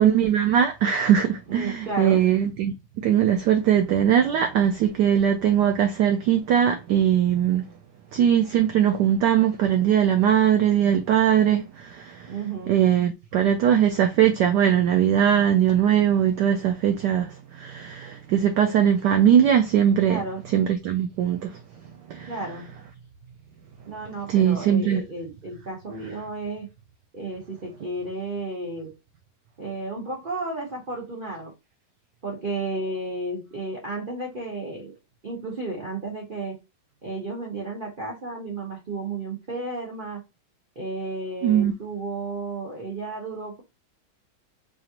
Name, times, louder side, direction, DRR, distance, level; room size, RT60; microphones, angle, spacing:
voice 1, 0.0-2.7 3.0-7.6 8.1-12.3 12.7-20.2 20.5-21.6 22.1-22.3 24.3-25.0 41.4-41.7, right 9 dB, 85° right, 0.9 m, -20 dB
voice 2, 1.5-2.2 12.3-12.8 20.1-20.4 22.3-22.7 23.9-26.7 27.1-28.9 29.6-31.5 32.2-35.0 35.2-36.6 37.0-40.2 40.7-43.6, right 2 dB, 65° right, 0.5 m, -33 dB
4.9 x 2.5 x 2.8 m
omnidirectional pair, 2.4 m